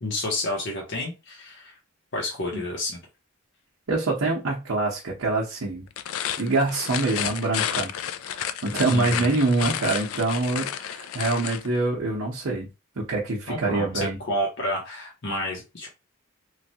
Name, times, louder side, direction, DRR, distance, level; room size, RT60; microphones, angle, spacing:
voice 1, 0.0-1.7 2.1-3.0 8.9-9.4 13.5-15.9, left 1 dB, 55° left, 0.8 m, -30 dB
voice 2, 3.9-5.9 6.4-7.9 8.3-12.7 13.0-14.2, right 2 dB, 70° right, 0.7 m, -25 dB
sound 1, 5.9-11.7, left 10 dB, 70° left, 0.3 m, -31 dB
3.2 x 2.3 x 2.7 m
head